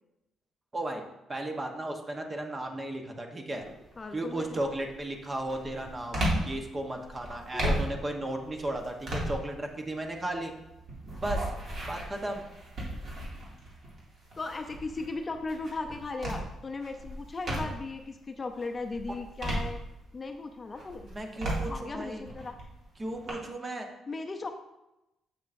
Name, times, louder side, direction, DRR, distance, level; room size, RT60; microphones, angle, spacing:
voice 1, 1.3-3.6 4.1-10.5 11.2-11.5 11.9-12.5 21.1-22.2 23.0-23.9, right 1 dB, 30° right, 3 dB, 1.0 m, -35 dB
sound 1, 3.6-4.0 4.5-18.0 18.5-20.3 20.7-23.3, right 1 dB, 55° right, 2.3 m, -36 dB
voice 2, 4.0-4.6 7.5-7.7 14.4-19.8 20.1-21.1 21.7-22.6 24.1-24.5, left 3 dB, 30° left, 5 dB, 0.5 m, -37 dB
7.3 x 6.5 x 2.6 m, 0.93 s
cardioid pair, 90°, 0 cm